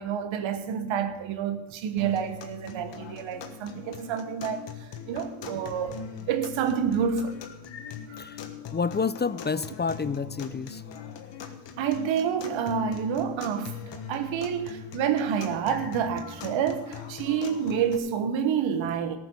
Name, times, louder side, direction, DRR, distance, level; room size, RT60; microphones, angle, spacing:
voice 1, 0.0-6.0 6.3-7.4 8.1-8.2 11.8-19.2, right 7 dB, 90° right, 1.2 m, -28 dB
sound 1, 2.0-18.0, left 7 dB, 70° left, 1.5 m, -41 dB
voice 2, 8.7-10.8, left 5 dB, 25° left, 0.5 m, -29 dB
14.0 x 6.9 x 8.3 m
cardioid pair, 65°, 45 cm